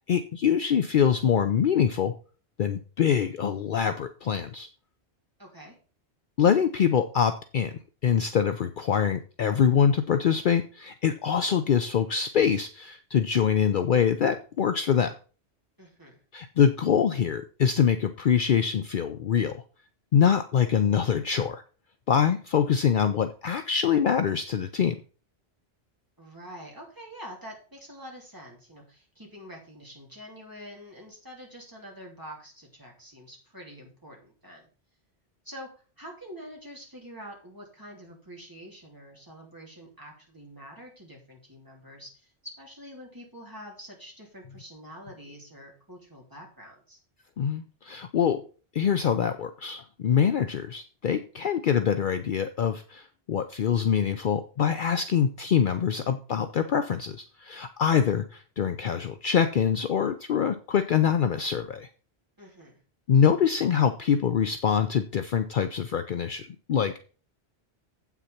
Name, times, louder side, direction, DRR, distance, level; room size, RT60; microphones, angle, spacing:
voice 1, 0.1-2.1 2.6-4.7 6.4-15.1 16.3-19.6 20.1-21.6 22.1-25.0 47.4-48.4 48.7-61.9 63.1-67.0, left 8 dB, 60° left, 10 dB, 0.7 m, -24 dB
voice 2, 5.4-5.7 15.8-16.2 26.2-34.7 35.4-47.0 62.4-62.8, equal, 20° right, -2 dB, 3.2 m, -46 dB
8.2 x 5.9 x 5.8 m, 0.38 s
omnidirectional pair, 1.1 m